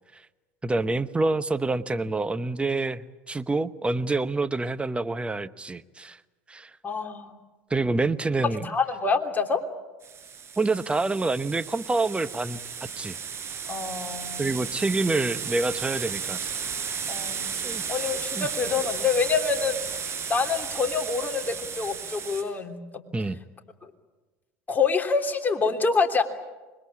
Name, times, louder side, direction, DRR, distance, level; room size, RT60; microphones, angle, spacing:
voice 1, 0.6-6.2 6.5-6.7 7.7-8.7 10.6-12.6 13.0-13.2 14.4-16.5 17.6-17.8 18.3-18.5 23.1-23.4, right 3 dB, 15° right, 13 dB, 1.0 m, -27 dB
voice 2, 6.8-7.4 8.6-9.6 13.7-14.6 17.1-17.6 17.9-20.0 20.3-23.0 23.8-23.9 24.7-26.2, left 5 dB, 20° left, 4 dB, 3.2 m, -26 dB
sound 1, 10.0-22.4, right 7 dB, 35° right, 6.6 m, -34 dB
26.0 x 21.5 x 8.6 m, 1.2 s
hypercardioid pair, 85°, 8 cm